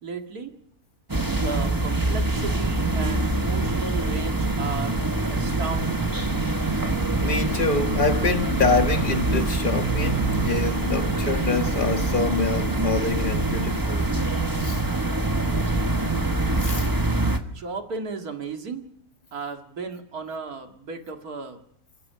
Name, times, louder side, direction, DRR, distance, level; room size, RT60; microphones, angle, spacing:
voice 1, 0.0-0.5 1.3-5.0 5.3-6.1 17.5-18.9 19.3-21.6, right 4 dB, 75° right, 2.6 m, -34 dB
sound 1, 1.1-17.4, right 2 dB, 15° right, 1.3 m, -24 dB
voice 2, 7.2-14.0 14.6-14.8 16.6-16.9, left 4 dB, 35° left, 1.6 m, -26 dB
29.5 x 15.5 x 5.7 m
omnidirectional pair, 1.6 m